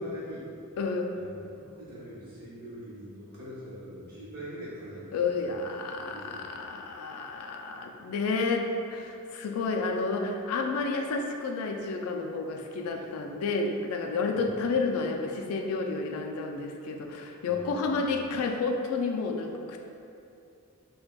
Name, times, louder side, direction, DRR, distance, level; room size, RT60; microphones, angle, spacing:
voice 1, 0.0-0.6 1.1-5.6 5.9-6.7 14.3-14.5 17.5-18.4, equal, 45° right, -9 dB, 1.1 m, -44 dB
voice 2, 0.8-1.1 5.1-19.8, left 4 dB, 85° left, 3 dB, 0.3 m, -30 dB
5.9 x 2.2 x 2.2 m, 2.6 s
head